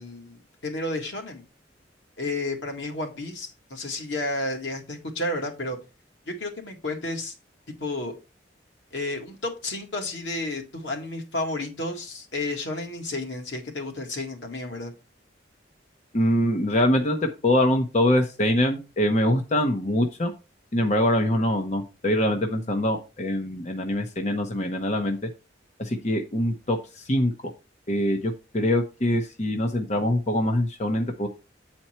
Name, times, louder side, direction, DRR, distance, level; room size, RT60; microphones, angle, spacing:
voice 1, 0.0-1.4 2.2-5.8 6.3-7.3 7.8-8.1 8.9-14.9, left 2 dB, 85° left, 2 dB, 2.1 m, -31 dB
voice 2, 16.1-20.3 20.7-25.2 25.8-27.5 27.9-31.3, left 1 dB, 40° left, 4 dB, 0.9 m, -24 dB
8.6 x 4.4 x 4.4 m, 0.29 s
head